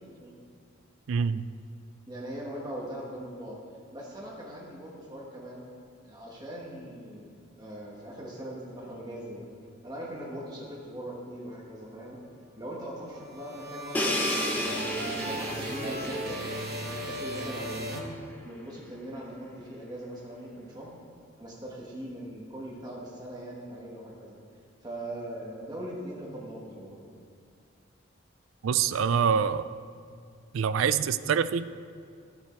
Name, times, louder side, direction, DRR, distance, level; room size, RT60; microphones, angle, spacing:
voice 1, 1.1-1.5 28.6-29.7 30.5-31.7, right 7 dB, 85° right, 14 dB, 0.4 m, -25 dB
voice 2, 2.1-3.6 3.9-5.6 6.0-9.5 9.8-12.2 12.6-14.2 14.6-18.0 18.4-20.9 21.4-24.4 24.8-27.1, right 1 dB, 20° right, -4 dB, 1.5 m, -40 dB
sound 1, 13.1-18.7, right 1 dB, 50° right, 1.1 m, -36 dB
Crash cymbal, 13.9-17.8, left 1 dB, 10° left, 0.7 m, -33 dB
12.0 x 7.1 x 4.4 m, 2.3 s
head